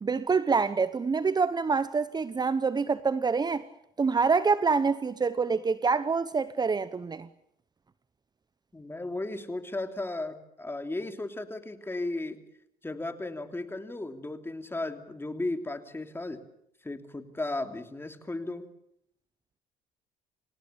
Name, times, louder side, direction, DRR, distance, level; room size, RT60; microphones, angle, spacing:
voice 1, 0.0-3.7 4.0-7.3, right 5 dB, 25° right, 1.0 m, -26 dB
voice 2, 8.7-12.4 12.8-16.4 16.8-18.6, left 2 dB, 15° left, 3.0 m, -35 dB
27.0 x 17.5 x 8.7 m
supercardioid pair, 80°, 16 cm